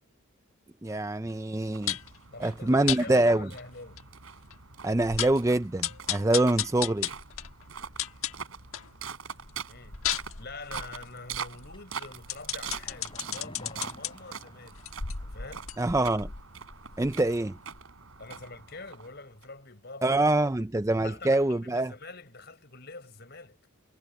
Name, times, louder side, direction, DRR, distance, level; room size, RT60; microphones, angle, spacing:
voice 1, 0.8-2.0 2.4-3.5 4.8-7.1 15.8-16.3 17.0-17.6 20.0-21.9, right 2 dB, 15° right, 0.4 m, -25 dB
sound 1, 1.7-19.4, right 7 dB, 90° right, 3.7 m, -43 dB
sound 2, 1.9-2.2 2.9-3.0 3.6-3.7 4.0-4.1 4.5-4.6 4.9-5.4 5.8-8.9 9.3-14.1 14.7-17.4 17.7-17.8, left 10 dB, 85° left, 1.4 m, -35 dB
voice 2, 2.3-4.0 9.7-14.8 15.2-15.7 18.2-20.5 21.0-23.6, left 3 dB, 50° left, 5.8 m, -45 dB
sound 3, 11.7-15.4 15.7-15.8, left 1 dB, 25° left, 6.5 m, -50 dB
head